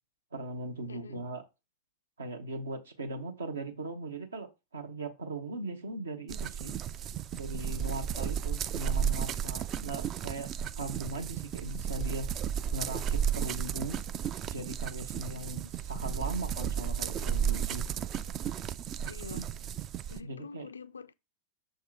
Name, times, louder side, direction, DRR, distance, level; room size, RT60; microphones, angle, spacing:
voice 1, 0.3-1.5 2.2-6.8 7.3-10.5 10.8-12.3 12.7-14.0 14.5-17.8 20.2-20.7, right 2 dB, 70° right, 1.1 m, -39 dB
voice 2, 0.9-1.2 8.3-8.4 8.9-9.0 15.3-15.5 19.1-19.5 20.1-21.1, left 4 dB, 75° left, 0.4 m, -46 dB
sound 1, 6.3-20.2, right 8 dB, 30° right, 0.4 m, -33 dB
6.5 x 3.5 x 4.5 m
figure-of-eight pair, 90°, 0 cm